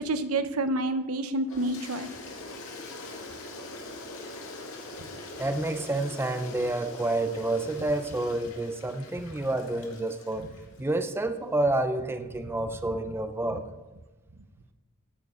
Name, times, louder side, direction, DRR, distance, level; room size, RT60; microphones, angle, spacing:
voice 1, 0.0-2.1, right 2 dB, 85° right, 10 dB, 0.9 m, -28 dB
Toilet flush, 1.5-10.8, left 2 dB, 75° left, 2.0 m, -43 dB
voice 2, 5.4-10.5 10.8-13.7, right 2 dB, 10° right, 9 dB, 0.5 m, -29 dB
14.5 x 7.1 x 5.0 m, 1.2 s
head